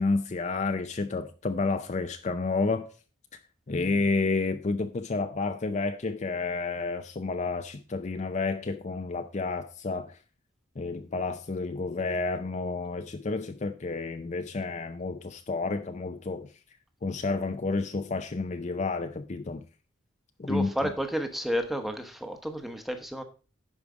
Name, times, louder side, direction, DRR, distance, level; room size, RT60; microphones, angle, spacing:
voice 1, 0.0-2.9 3.7-10.2 10.8-16.5 17.0-19.6 20.4-20.7, left 3 dB, 35° left, 0.5 m, -30 dB
voice 2, 20.5-23.2, equal, ahead, 1.0 m, -31 dB
10.5 x 4.9 x 4.9 m
head